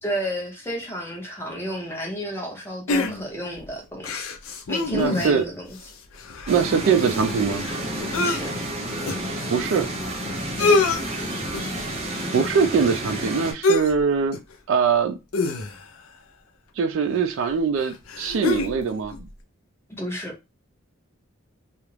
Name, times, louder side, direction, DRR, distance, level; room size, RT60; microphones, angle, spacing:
voice 1, 0.0-4.3 4.7-5.8 6.4-6.5 8.2-8.5 10.6-10.8 20.0-20.4, equal, 10° left, 0.6 m, -31 dB
sound 1, 2.9-3.5 4.0-5.5 5.8-5.9 6.1-8.4 9.1-9.2 10.1-10.2 10.4-11.0 11.5-11.8 13.6-14.0 14.3-14.5 15.3-16.0 17.1-17.2 17.8-18.8 19.1-19.2, left 3 dB, 85° left, 0.5 m, -25 dB
voice 2, 4.9-5.5 6.5-7.6 9.5-9.9 12.3-14.4 14.7-15.2 16.8-19.3, right 6 dB, 65° right, 0.3 m, -22 dB
sound 2, 6.5-13.5, right 1 dB, 30° right, 0.6 m, -30 dB
2.3 x 2.0 x 3.1 m
head